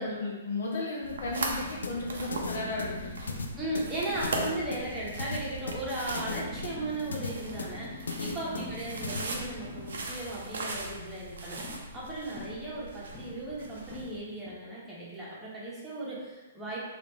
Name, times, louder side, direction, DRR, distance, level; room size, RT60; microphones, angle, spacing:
voice 1, 0.0-3.3 8.4-9.1, left 2 dB, 65° left, -3 dB, 1.0 m, -35 dB
sound 1, 1.0-14.2, right 2 dB, 70° right, 0.6 m, -39 dB
sound 2, 1.8-9.2, left 4 dB, 85° left, 0.4 m, -37 dB
sound 3, 2.3-5.0 6.3-10.0 11.6-14.6, left 3 dB, 25° left, 1.0 m, -45 dB
voice 2, 3.6-16.8, right 2 dB, 10° right, -7 dB, 1.1 m, -37 dB
3.1 x 2.6 x 3.1 m, 1.2 s
hypercardioid pair, 130°, 0 cm